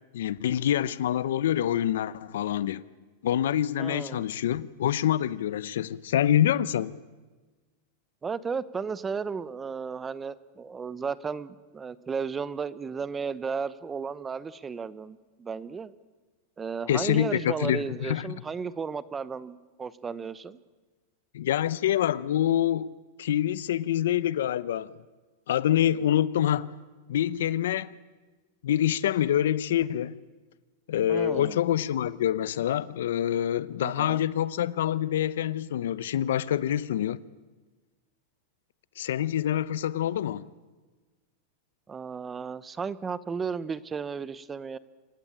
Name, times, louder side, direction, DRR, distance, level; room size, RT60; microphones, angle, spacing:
voice 1, 0.1-2.8 3.2-6.9 16.9-18.3 21.3-22.9 23.2-24.9 25.5-26.7 27.1-28.0 28.6-30.2 30.9-37.2 39.0-40.5, left 11 dB, 80° left, 0.8 m, -26 dB
voice 2, 3.8-4.3 8.2-15.9 16.6-20.6 31.1-31.6 33.8-34.2 41.9-44.8, right 5 dB, 15° right, 0.8 m, -34 dB
27.0 x 16.0 x 8.9 m
supercardioid pair, 140°, 0 cm